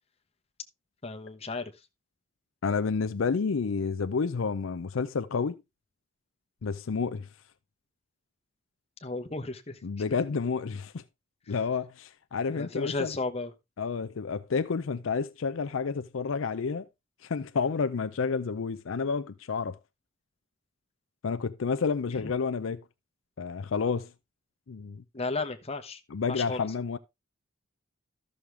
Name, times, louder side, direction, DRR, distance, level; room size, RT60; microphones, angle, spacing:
voice 1, 1.0-1.7 9.0-9.8 12.5-13.5 22.2-22.3 25.1-26.0 26.3-26.7, left 3 dB, 30° left, 1.1 m, -34 dB
voice 2, 2.6-5.6 6.6-7.3 9.8-11.0 11.5-13.1 13.8-16.9 17.2-19.8 21.2-22.8 23.4-24.1 24.7-25.0 26.1-27.0, left 5 dB, 70° left, 0.5 m, -30 dB
13.0 x 6.4 x 3.3 m
head